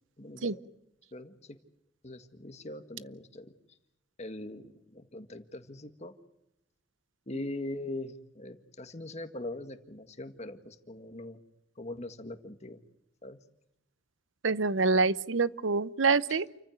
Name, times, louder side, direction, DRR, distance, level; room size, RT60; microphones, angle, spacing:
voice 1, 0.2-0.6 1.1-1.6 2.0-3.5 4.2-6.1 7.3-11.4 11.8-12.8 13.2-13.4 16.3-16.4, left 1 dB, 35° left, 8 dB, 1.8 m, -41 dB
voice 2, 14.4-16.5, right 4 dB, 85° right, 17 dB, 0.8 m, -26 dB
29.0 x 14.5 x 9.2 m, 0.87 s
head